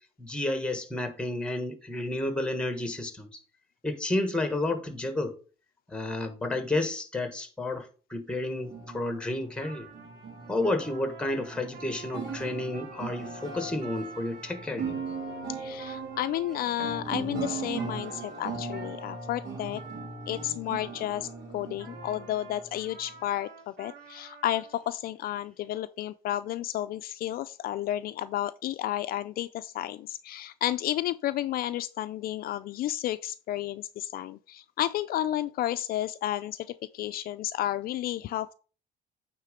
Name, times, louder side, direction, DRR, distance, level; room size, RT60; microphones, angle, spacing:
voice 1, 0.2-3.4 3.8-5.4 5.9-9.9 10.5-15.0, left 2 dB, 5° left, 1.4 m, -31 dB
sound 1, 8.5-23.2, right 4 dB, 90° right, 2.0 m, -39 dB
Trumpet, 9.5-21.3 21.8-24.8, right 5 dB, 70° right, 2.0 m, -48 dB
voice 2, 15.5-19.8 20.3-38.5, left 13 dB, 60° left, 0.4 m, -32 dB
8.9 x 3.7 x 4.9 m
cardioid pair, 110°, 17 cm